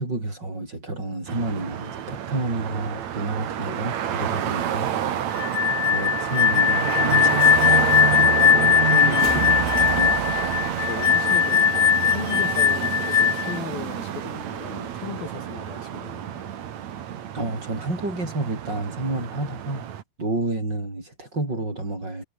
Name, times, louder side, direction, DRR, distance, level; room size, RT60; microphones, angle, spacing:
voice 1, 0.0-4.9 5.8-8.1 9.3-9.4 10.0-10.2 17.3-19.9 20.2-22.2, right 2 dB, 25° right, 7.2 m, -30 dB
sound 1, 1.3-20.0, right 10 dB, 55° right, 2.7 m, -28 dB
sound 2, 4.4-11.1, left 1 dB, 10° left, 4.3 m, -40 dB
sound 3, 5.4-13.6, left 8 dB, 50° left, 2.4 m, -20 dB
voice 2, 8.7-9.5 10.8-16.5, left 6 dB, 75° left, 5.5 m, -36 dB
omnidirectional pair, 4.3 m